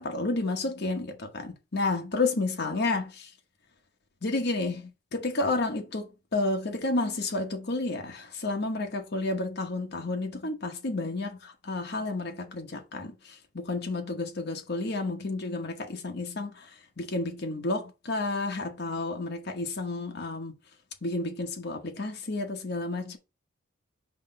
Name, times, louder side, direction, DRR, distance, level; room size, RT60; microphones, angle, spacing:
voice 1, 0.0-3.3 4.2-13.1 13.5-16.7 17.0-20.5 21.0-23.2, left 2 dB, 50° left, 1.0 m, -31 dB
5.7 x 3.2 x 5.1 m
head